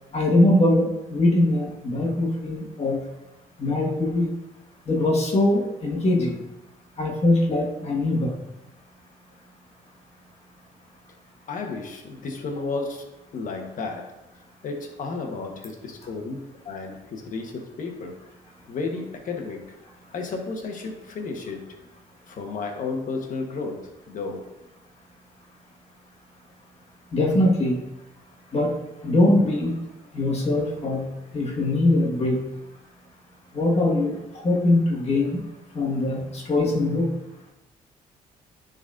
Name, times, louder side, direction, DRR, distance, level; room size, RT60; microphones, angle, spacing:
voice 1, 0.1-3.0 3.6-4.3 4.9-6.4 7.0-8.4 27.1-27.8 28.5-28.8 29.0-29.8 30.1-31.1 31.3-32.4 33.5-35.4 35.7-37.1, left 1 dB, 45° left, -2 dB, 1.6 m, -22 dB
voice 2, 11.5-16.4 16.6-18.2 18.7-19.8 20.1-21.6 22.3-24.4, left 4 dB, 60° left, 3 dB, 1.3 m, -33 dB
10.0 x 4.1 x 2.6 m, 0.97 s
cardioid pair, 80°, 15 cm